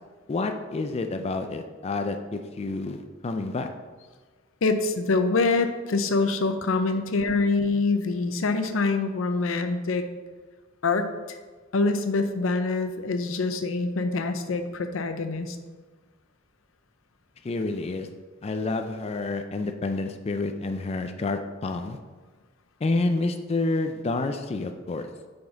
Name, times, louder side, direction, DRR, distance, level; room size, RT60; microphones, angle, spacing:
voice 1, 0.3-3.7 6.9-7.0 17.4-18.1 18.4-22.0 22.8-25.1, left 3 dB, 30° left, 6 dB, 0.4 m, -29 dB
voice 2, 4.6-10.1 10.8-11.1 11.7-15.6, left 3 dB, 90° left, 8 dB, 0.6 m, -25 dB
5.9 x 5.2 x 3.9 m, 1.4 s
head